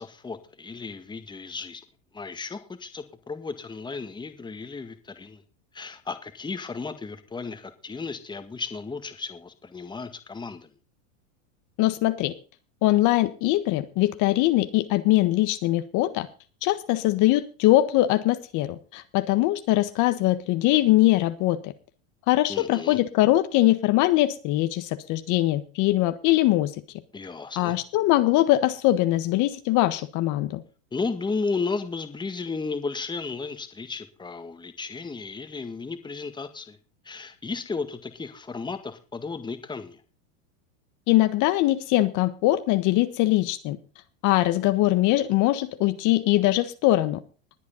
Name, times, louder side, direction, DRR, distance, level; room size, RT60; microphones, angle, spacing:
voice 1, 0.0-1.8 2.1-5.4 5.7-10.7 22.5-23.0 27.1-27.8 30.9-36.8 37.0-40.0, left 4 dB, 10° left, 9 dB, 1.9 m, -34 dB
voice 2, 11.8-12.3 12.8-16.3 16.6-21.7 22.3-26.7 27.6-30.6 41.1-43.8 44.2-47.2, left 16 dB, 50° left, 10 dB, 1.4 m, -22 dB
21.0 x 8.4 x 3.9 m, 0.35 s
supercardioid pair, 135°, 40 cm